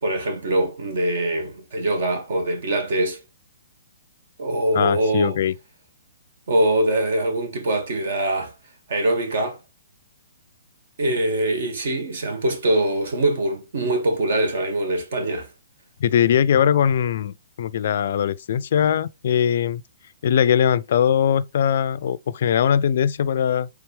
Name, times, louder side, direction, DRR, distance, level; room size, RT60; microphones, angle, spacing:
voice 1, 0.0-3.2 4.4-5.4 6.5-8.5 8.9-9.6 11.0-15.5, right 1 dB, 65° right, 1.8 m, -23 dB
voice 2, 4.8-5.5 16.0-19.8 20.2-23.7, left 8 dB, 55° left, 0.3 m, -20 dB
4.6 x 3.3 x 3.3 m
hypercardioid pair, 145°, 0 cm